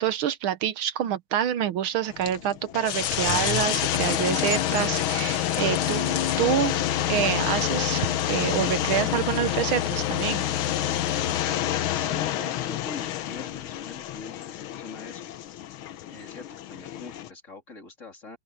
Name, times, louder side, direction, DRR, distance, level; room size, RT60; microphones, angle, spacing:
voice 1, 0.0-6.8 7.1-10.4, right 10 dB, 80° right, 1.7 m, -27 dB
sound 1, 2.1-17.3, left 12 dB, 75° left, 1.7 m, -28 dB
sound 2, 2.8-11.4, left 7 dB, 60° left, 2.0 m, -38 dB
voice 2, 11.9-15.3 16.1-18.4, left 3 dB, 35° left, 3.3 m, -43 dB
open air
omnidirectional pair, 2.3 m